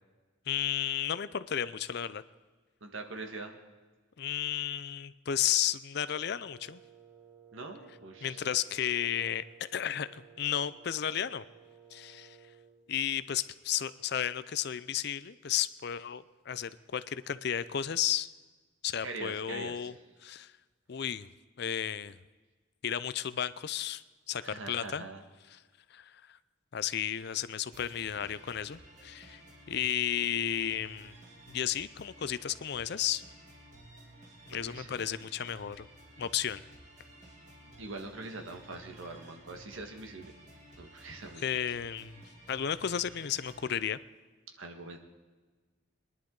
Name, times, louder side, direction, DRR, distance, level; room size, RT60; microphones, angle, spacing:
voice 1, 0.5-2.2 4.2-6.8 8.2-11.4 11.9-12.4 12.9-18.3 18.8-19.9 20.2-20.5 20.9-21.3 21.6-22.2 22.8-24.0 24.3-25.1 25.9-26.2 26.7-29.4 29.7-31.1 31.5-33.2 34.5-35.9 36.2-36.6 41.4-42.2 42.5-44.0, left 9 dB, 55° left, 15 dB, 0.5 m, -33 dB
voice 2, 2.8-3.6 7.5-8.4 19.0-19.9 24.4-25.2 34.5-35.1 37.8-40.3 40.8-41.4 44.6-45.0, right 2 dB, 75° right, 4 dB, 1.6 m, -43 dB
Wind instrument woodwind instrument, 6.0-12.8, right 7 dB, 5° left, 4.8 m, -57 dB
sound 1, 27.7-43.7, right 1 dB, 35° right, 2.5 m, -54 dB
22.0 x 11.0 x 3.9 m, 1.3 s
head